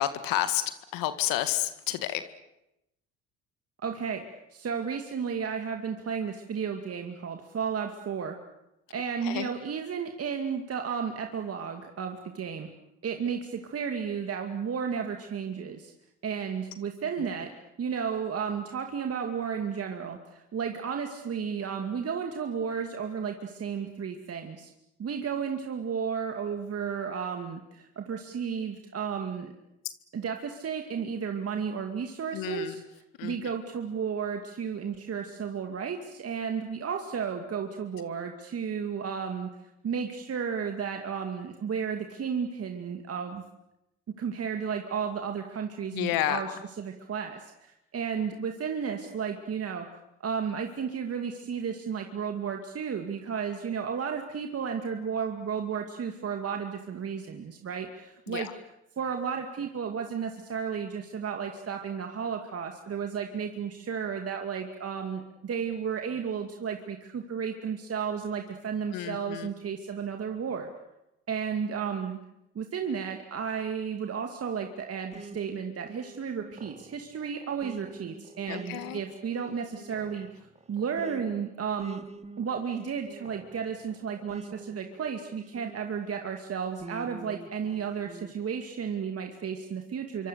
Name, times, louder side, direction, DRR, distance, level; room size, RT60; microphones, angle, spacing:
voice 1, 0.0-2.3 9.2-9.6 32.3-32.8 33.2-33.5 45.9-46.6 58.3-58.5 68.9-69.5 78.5-79.0, left 13 dB, 65° left, 11 dB, 1.9 m, -30 dB
voice 2, 3.8-4.2 4.5-8.4 8.9-12.7 13.0-15.9 16.2-17.5 17.8-24.7 25.0-29.5 30.1-32.8 33.2-39.5 39.8-43.4 44.2-46.5 46.8-49.9 50.2-58.5 59.0-70.7 71.3-72.2 72.5-80.3 80.7-82.0 82.4-90.3, right 6 dB, 40° right, 4 dB, 2.4 m, -33 dB
sound 1, 75.1-86.2 86.8-88.3, right 3 dB, 20° right, 1.8 m, -47 dB
27.5 x 24.5 x 7.0 m, 0.87 s
hypercardioid pair, 60°, 36 cm